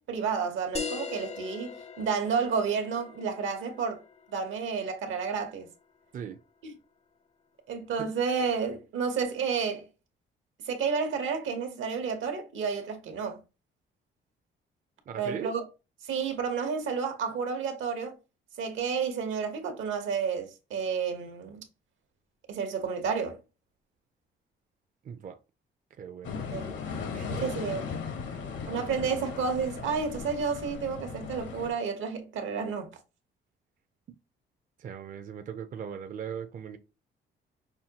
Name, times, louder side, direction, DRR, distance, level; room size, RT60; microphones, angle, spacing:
voice 1, 0.0-4.0 4.3-5.7 6.6-6.7 7.7-9.8 10.6-13.4 15.2-15.7 16.0-18.2 18.6-21.6 22.5-23.4 26.5-26.7 27.4-27.8 28.7-32.9, right 6 dB, 80° right, 1.0 m, -31 dB
sound 1, 0.7-5.8, left 5 dB, 35° left, 0.5 m, -41 dB
voice 2, 15.1-15.5 25.0-25.4 26.0-26.3 27.1-27.4 28.3-28.4 34.1-34.2 34.8-36.8, right 8 dB, 40° right, 0.4 m, -39 dB
sound 2, 26.2-31.7, left 5 dB, 75° left, 1.0 m, -37 dB
5.6 x 2.2 x 2.8 m
cardioid pair, 90°, 20 cm